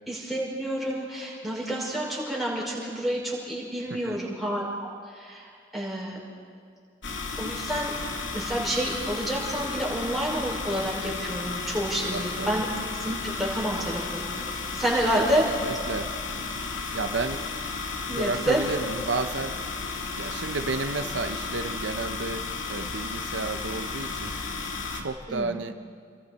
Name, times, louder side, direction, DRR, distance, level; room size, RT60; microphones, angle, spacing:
voice 1, 0.1-6.2 7.4-7.9 8.3-12.7 13.0-14.3 14.7-15.5 18.1-18.6 25.3-25.5, right 1 dB, ahead, -6 dB, 5.4 m, -29 dB
sound 1, 7.0-25.0, left 4 dB, 85° left, 2.1 m, -33 dB
voice 2, 12.1-12.6 15.1-15.2 15.6-16.1 16.9-17.4 18.1-19.5 20.2-22.4 22.7-24.3 24.9-25.7, right 3 dB, 75° right, 7 dB, 0.8 m, -32 dB
30.0 x 23.0 x 4.2 m, 2.2 s
head